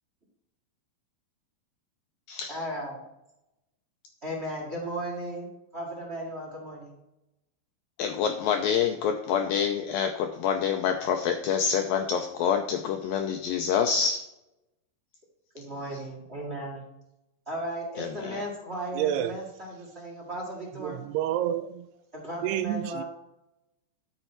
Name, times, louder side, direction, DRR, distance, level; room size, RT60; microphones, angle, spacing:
voice 1, 2.5-3.0 4.2-6.9 15.5-16.9 17.4-21.0 22.1-23.0, right 1 dB, 35° right, -2 dB, 1.0 m, -36 dB
voice 2, 8.0-14.3 18.0-18.4, left 7 dB, 90° left, 4 dB, 2.0 m, -27 dB
voice 3, 19.0-19.3 20.8-21.9 22.4-23.0, right 11 dB, 80° right, 11 dB, 2.5 m, -29 dB
12.5 x 6.7 x 4.5 m, 0.88 s
omnidirectional pair, 4.9 m